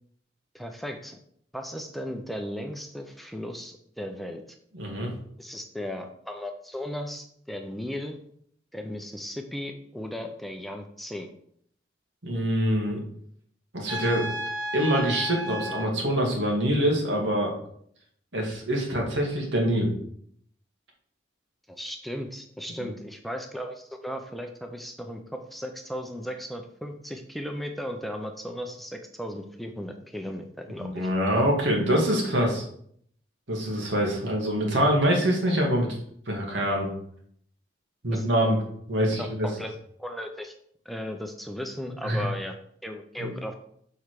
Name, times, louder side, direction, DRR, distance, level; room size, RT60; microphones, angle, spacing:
voice 1, 0.5-1.2 1.5-4.4 5.4-8.2 8.7-11.3 21.7-31.1 38.1-38.3 39.2-39.7 40.0-40.5 40.9-42.5 42.8-43.5, equal, ahead, 4 dB, 0.6 m, -36 dB
voice 2, 4.7-5.1 12.2-13.0 13.7-14.3 14.7-17.5 18.3-19.9 22.8-22.9 30.8-32.6 33.5-35.9 36.3-36.9 38.0-38.6 38.9-39.5 42.0-42.2 43.2-43.3, equal, 80° right, -1 dB, 2.1 m, -25 dB
Trumpet, 13.9-15.9, equal, 20° right, 1.5 m, -33 dB
7.0 x 5.7 x 4.8 m, 0.67 s
head